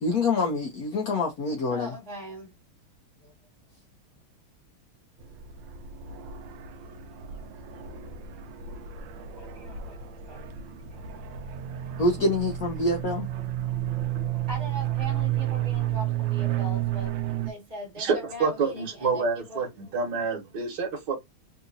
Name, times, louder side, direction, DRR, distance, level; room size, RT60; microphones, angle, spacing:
voice 1, 0.0-1.9 12.0-13.3, left 2 dB, 80° left, 0.8 m, -26 dB
voice 2, 1.7-2.5 3.2-3.3 9.1-10.0 10.2-10.4 14.5-19.6, equal, 30° right, 0.9 m, -40 dB
sound 1, 5.2-17.5, right 12 dB, 75° right, 1.1 m, -32 dB
voice 3, 18.0-21.1, right 5 dB, 60° right, 1.5 m, -28 dB
3.7 x 2.8 x 2.6 m
omnidirectional pair, 2.4 m